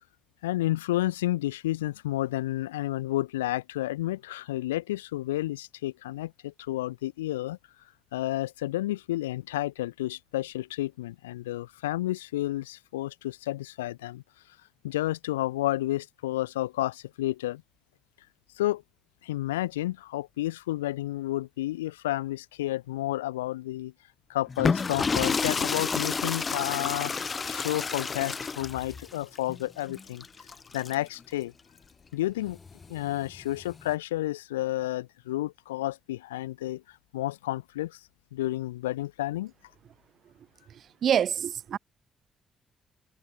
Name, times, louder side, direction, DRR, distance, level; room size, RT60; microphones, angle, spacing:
voice 1, 0.4-7.6 8.1-14.2 14.8-17.6 18.6-18.8 19.2-23.9 24.3-30.2 30.7-31.5 32.1-32.6 32.9-36.8 37.1-38.0 38.3-39.5, left 15 dB, 75° left, 1.3 m, -31 dB
sound 1, 24.5-31.2 32.5-33.9, left 5 dB, 35° left, 0.9 m, -30 dB
voice 2, 41.0-41.8, right 9 dB, 55° right, 0.4 m, -25 dB
figure-of-eight pair, 40°, 0 cm